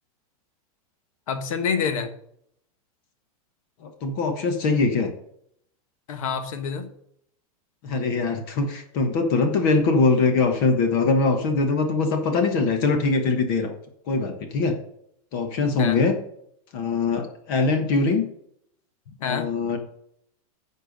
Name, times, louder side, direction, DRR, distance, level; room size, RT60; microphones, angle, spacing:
voice 1, 1.3-2.1 6.1-6.9 15.8-16.0 19.1-19.5, left 6 dB, 65° left, 8 dB, 1.4 m, -27 dB
voice 2, 3.8-5.1 7.8-13.7 14.1-14.8 15.3-16.1 16.7-18.2 19.2-19.8, left 3 dB, 40° left, 6 dB, 1.2 m, -22 dB
10.5 x 4.5 x 6.5 m, 0.71 s
supercardioid pair, 175°, 18 cm